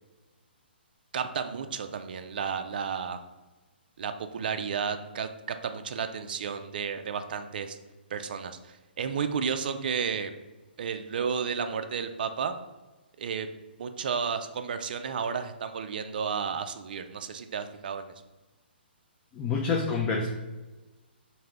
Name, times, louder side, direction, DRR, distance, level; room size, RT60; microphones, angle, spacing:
voice 1, 1.1-3.2 4.0-7.8 8.1-8.6 9.0-10.3 10.8-12.5 13.2-13.5 13.8-18.1, right 6 dB, 55° right, 8 dB, 0.3 m, -32 dB
voice 2, 19.3-20.3, left 4 dB, 20° left, 0 dB, 0.4 m, -27 dB
4.6 x 2.6 x 3.3 m, 1.2 s
figure-of-eight pair, 130°, 6 cm